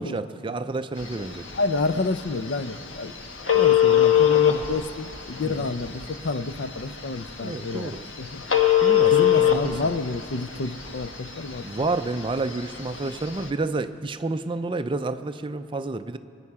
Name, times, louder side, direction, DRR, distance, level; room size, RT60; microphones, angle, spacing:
voice 1, 0.0-1.5 5.4-5.7 7.4-8.0 8.8-9.7 11.6-16.2, right 3 dB, 25° right, 10 dB, 0.4 m, -30 dB
Telephone, 1.0-13.5, left 10 dB, 75° left, 1.3 m, -24 dB
voice 2, 1.5-3.1 3.5-8.4 9.1-11.7, left 3 dB, 60° left, 13 dB, 0.5 m, -29 dB
26.5 x 9.7 x 4.8 m, 2.6 s
head